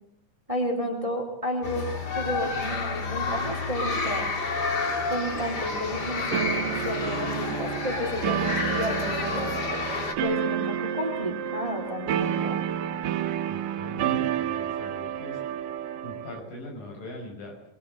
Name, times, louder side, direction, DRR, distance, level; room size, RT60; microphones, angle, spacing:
voice 1, 0.5-4.2 5.1-9.5 10.2-12.6, equal, 10° right, 5 dB, 3.4 m, -32 dB
sound 1, 1.6-10.1, left 3 dB, 30° left, 2.5 m, -30 dB
sound 2, 6.3-16.4, right 10 dB, 75° right, 2.9 m, -30 dB
voice 2, 13.5-15.4 16.0-17.6, left 1 dB, 75° left, 2 dB, 7.3 m, -41 dB
23.0 x 21.5 x 8.0 m, 0.74 s
omnidirectional pair, 3.9 m